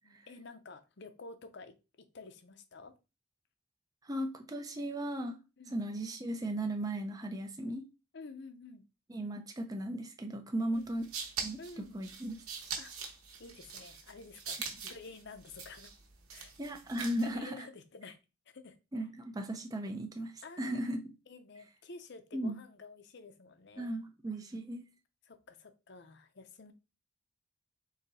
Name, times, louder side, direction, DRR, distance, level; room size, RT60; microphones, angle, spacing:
voice 1, 0.1-1.7 2.1-2.9 5.6-5.8 8.1-8.8 10.7-10.9 11.6-12.0 12.8-12.9 13.4-15.9 16.3-16.5 17.2-18.2 18.5-18.8 20.4-20.9 21.3-24.0 25.3-26.7, left 3 dB, 55° left, 0.6 m, -50 dB
voice 2, 4.0-5.4 5.7-7.9 9.1-11.1 11.4-12.4 16.6-17.7 18.9-21.0 22.3-22.6 23.8-24.8, right 1 dB, 15° right, 0.4 m, -36 dB
sound 1, 10.8-17.4, right 6 dB, 90° right, 1.0 m, -43 dB
3.9 x 2.7 x 4.1 m
head